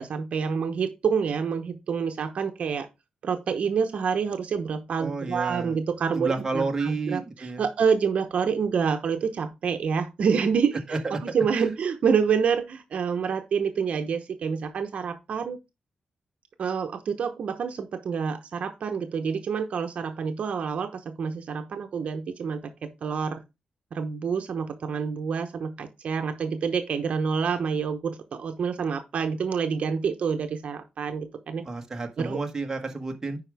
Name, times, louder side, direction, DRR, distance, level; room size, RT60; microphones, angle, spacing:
voice 1, 0.0-2.9 3.2-15.6 16.6-23.4 23.9-31.6 32.2-32.4, right 6 dB, 60° right, 0.9 m, -27 dB
voice 2, 5.0-5.8 6.1-7.6 10.9-11.2 31.6-33.4, right 3 dB, 20° right, 1.3 m, -30 dB
9.8 x 5.0 x 3.4 m
wide cardioid pair, 145°, 2 cm